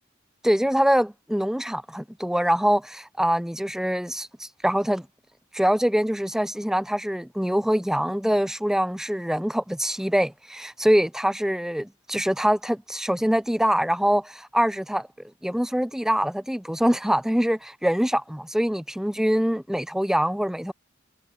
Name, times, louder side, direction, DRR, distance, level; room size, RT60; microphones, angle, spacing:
voice 1, 0.4-5.1 5.5-15.1 15.4-20.7, equal, ahead, 0.6 m, -24 dB
head